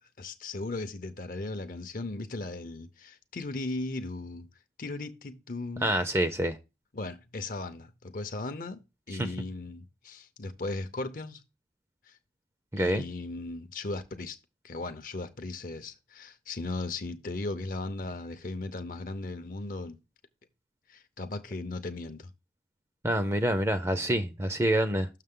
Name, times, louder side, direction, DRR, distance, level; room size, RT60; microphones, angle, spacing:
voice 1, 0.2-4.5 4.8-6.0 6.9-8.8 9.1-11.4 12.1-12.2 12.8-14.4 14.6-20.0 20.9-22.3, left 2 dB, 50° left, 0.6 m, -37 dB
voice 2, 5.8-6.6 9.2-9.3 12.7-13.0 23.0-25.1, right 1 dB, 15° right, 0.5 m, -26 dB
6.6 x 6.3 x 3.7 m
head